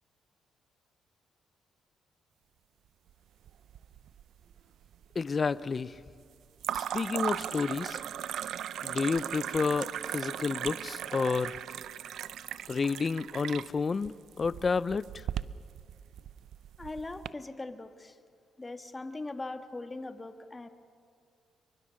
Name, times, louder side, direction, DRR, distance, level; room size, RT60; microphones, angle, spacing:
sound 1, 3.5-4.2 4.5-5.1 6.6-17.3, right 10 dB, 75° right, 0.6 m, -38 dB
voice 1, 5.1-6.0 6.7-8.0 8.8-11.6 12.7-15.1, left 5 dB, 35° left, 17 dB, 0.6 m, -30 dB
voice 2, 16.8-18.2 18.6-20.7, left 2 dB, 20° left, 7 dB, 1.7 m, -40 dB
28.5 x 23.5 x 6.5 m, 2.2 s
cardioid pair, 90°, 0 cm